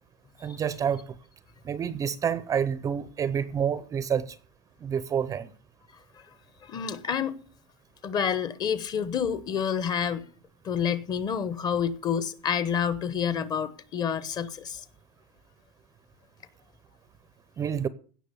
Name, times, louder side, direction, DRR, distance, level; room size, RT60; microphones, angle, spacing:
voice 1, 0.4-1.2 1.6-4.4 4.8-5.5 17.6-17.9, right 8 dB, 20° right, 0.6 m, -28 dB
voice 2, 6.6-7.4 8.0-10.3 10.6-14.8, left 7 dB, 25° left, 1.0 m, -28 dB
16.5 x 6.1 x 8.4 m
supercardioid pair, 155°, 16 cm